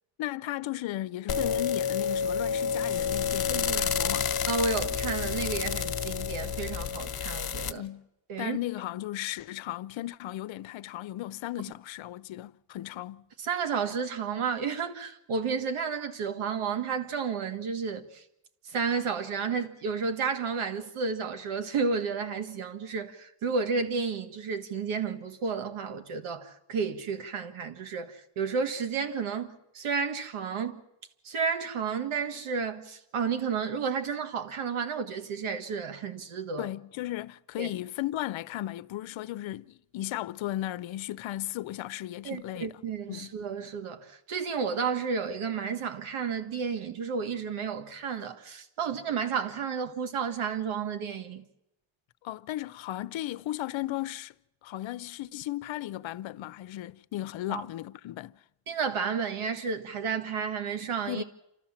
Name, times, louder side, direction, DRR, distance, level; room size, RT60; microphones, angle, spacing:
voice 1, 0.2-4.3 7.8-8.1 8.4-13.2 36.6-42.7 43.1-43.3 52.2-54.4 54.6-58.4 61.1-61.2, left 15 dB, 65° left, 0.7 m, -35 dB
sound 1, 1.3-7.7, left 7 dB, 50° left, 1.3 m, -29 dB
voice 2, 3.5-3.8 4.5-7.8 8.3-8.6 13.4-18.2 18.6-30.8 31.2-36.7 37.6-37.7 42.2-51.4 57.5-57.6 58.7-61.2, right 5 dB, 75° right, 1.7 m, -32 dB
28.0 x 13.5 x 7.3 m
cardioid pair, 75°, 49 cm